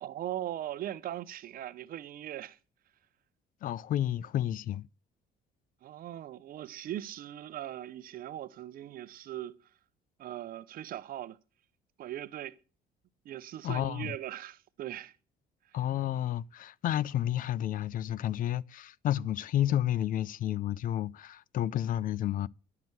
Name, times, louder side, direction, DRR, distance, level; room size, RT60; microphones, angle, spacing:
voice 1, 0.0-2.6 5.8-9.6 10.2-11.4 12.0-12.6 13.2-15.2 15.7-15.8, right 12 dB, 60° right, 0.7 m, -40 dB
voice 2, 3.6-4.9 13.6-14.1 15.7-22.5, left 12 dB, 55° left, 0.4 m, -31 dB
11.0 x 5.9 x 7.8 m
cardioid pair, 110°, 17 cm